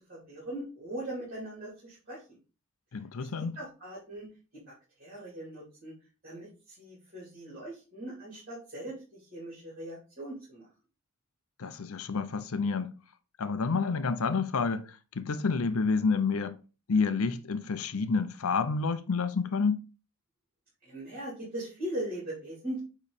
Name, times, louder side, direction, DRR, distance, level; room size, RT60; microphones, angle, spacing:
voice 1, 0.0-2.4 3.2-3.3 3.5-4.3 4.7-5.9 6.2-10.7 20.8-22.8, right 1 dB, 40° right, 3.1 m, -40 dB
voice 2, 2.9-3.6 11.6-12.9 13.4-16.6 16.9-19.8, left 4 dB, 80° left, 0.6 m, -29 dB
8.5 x 3.1 x 4.0 m
head